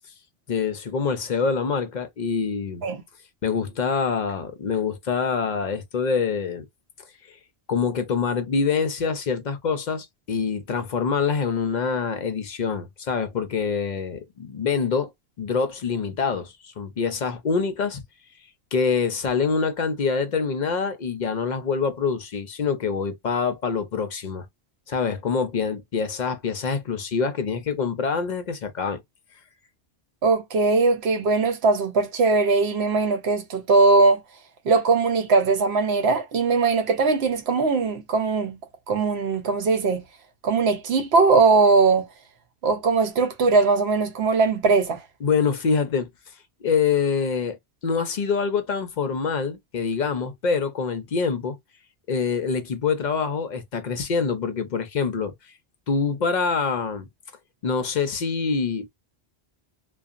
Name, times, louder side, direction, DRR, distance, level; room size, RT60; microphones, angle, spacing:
voice 1, 0.5-2.9 3.4-6.7 7.3-7.4 7.7-15.1 15.4-18.0 18.7-24.5 24.9-29.0 45.2-46.1 46.6-47.6 47.8-51.6 52.1-55.5 55.9-57.1 57.6-58.9, left 5 dB, 55° left, 0.5 m, -25 dB
voice 2, 30.2-34.2 34.6-38.6 38.9-40.0 40.4-42.1 42.6-45.0, right 4 dB, 75° right, 1.0 m, -20 dB
2.7 x 2.1 x 2.4 m
omnidirectional pair, 1.1 m